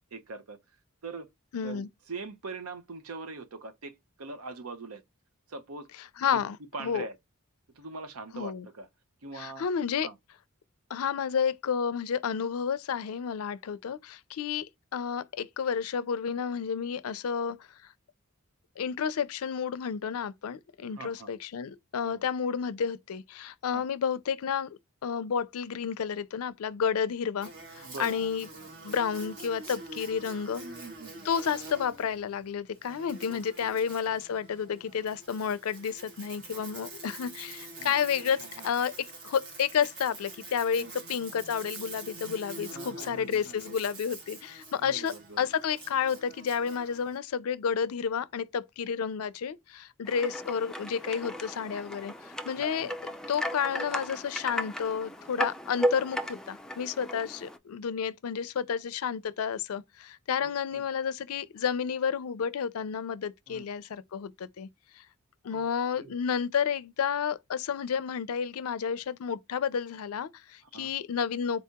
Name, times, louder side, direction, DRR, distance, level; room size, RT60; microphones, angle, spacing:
voice 1, 0.1-0.6 1.0-1.3 1.6-5.0 5.5-5.9 6.2-6.4 6.7-7.2 7.7-8.9 9.2-9.7 10.0-10.1 21.0-21.3 22.0-22.3 23.7-23.9 27.8-28.2 28.6-28.7 30.6-31.3 33.3-33.7 37.8-37.9 38.2-38.7 40.8-40.9 42.7-43.7 44.8-45.5 52.5-52.9 60.4-60.9 63.5-63.7 65.5-65.7 65.9-66.2 70.7-70.9, right 3 dB, 85° right, 0.7 m, -43 dB
voice 2, 1.5-1.9 6.2-7.1 8.3-8.7 9.4-10.1 10.9-17.6 18.8-24.7 25.0-27.5 27.7-28.5 28.8-30.6 31.2-64.7 65.0-65.1 65.4-71.6, left 7 dB, 85° left, 0.4 m, -31 dB
Buzz, 27.4-47.2, right 2 dB, 55° right, 1.4 m, -46 dB
sound 1, 50.1-57.6, equal, 5° left, 0.3 m, -35 dB
4.1 x 2.8 x 3.5 m
head